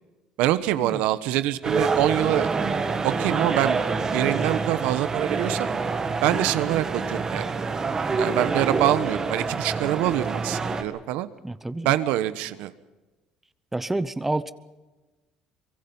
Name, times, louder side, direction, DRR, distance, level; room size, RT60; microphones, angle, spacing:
voice 1, 0.4-2.5 3.0-3.8 4.1-5.7 6.2-7.5 8.2-11.3 11.8-12.7, right 14 dB, 80° right, 13 dB, 1.1 m, -25 dB
sound 1, 1.6-10.8, right 4 dB, 30° right, 2.0 m, -26 dB
voice 2, 11.4-11.9 13.7-14.5, right 2 dB, 10° right, 14 dB, 0.8 m, -28 dB
24.0 x 23.0 x 5.5 m, 1.2 s
cardioid pair, 110°, 2 cm